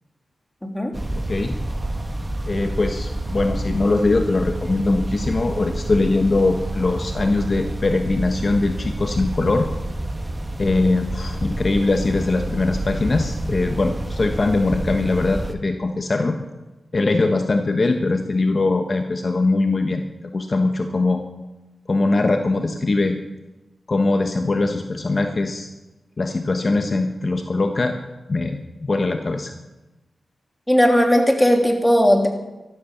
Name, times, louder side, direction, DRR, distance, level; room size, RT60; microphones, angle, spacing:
sound 1, 0.9-15.6, right 1 dB, 25° right, 1.5 m, -28 dB
voice 1, 1.1-1.6 2.4-9.7 10.6-16.4 16.9-20.0 20.3-21.2 21.9-23.2 23.9-25.7 26.2-27.9 28.3-29.5, left 3 dB, 45° left, 5 dB, 1.3 m, -21 dB
voice 2, 30.7-32.3, equal, 10° left, 3 dB, 3.0 m, -16 dB
13.0 x 13.0 x 6.8 m, 1.0 s
cardioid pair, 60°, 0 cm